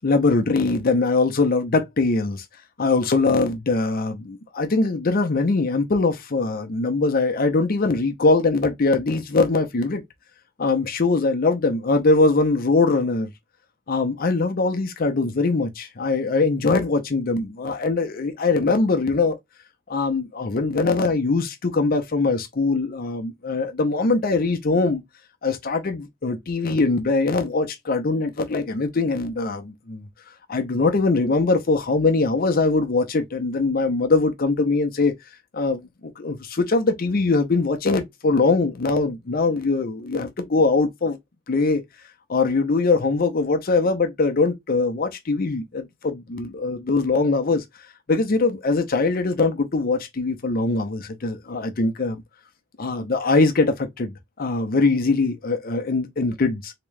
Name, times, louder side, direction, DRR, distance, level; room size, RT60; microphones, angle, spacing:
voice 1, 0.0-2.5 2.8-10.0 10.6-13.3 13.9-19.4 19.9-25.0 25.4-35.1 35.5-41.2 41.5-41.8 42.3-47.6 48.1-52.2 52.8-56.7, left 3 dB, 50° left, 0.6 m, -22 dB
3.5 x 2.9 x 3.2 m
head